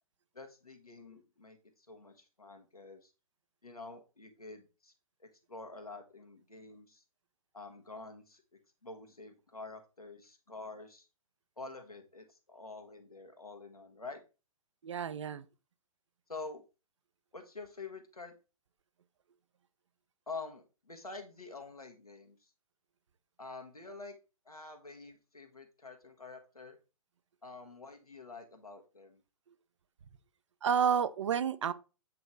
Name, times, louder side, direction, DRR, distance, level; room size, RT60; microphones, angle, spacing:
voice 1, 0.3-3.1 3.6-4.9 5.2-7.0 7.5-11.1 11.6-14.2 16.3-16.6 17.3-18.3 20.3-22.5 23.4-24.2 24.4-26.8 27.4-29.2, left 3 dB, 85° left, 1.4 m, -47 dB
voice 2, 14.8-15.4 30.6-31.7, right 7 dB, 55° right, 0.6 m, -30 dB
8.4 x 3.0 x 3.7 m
figure-of-eight pair, 120°, 18 cm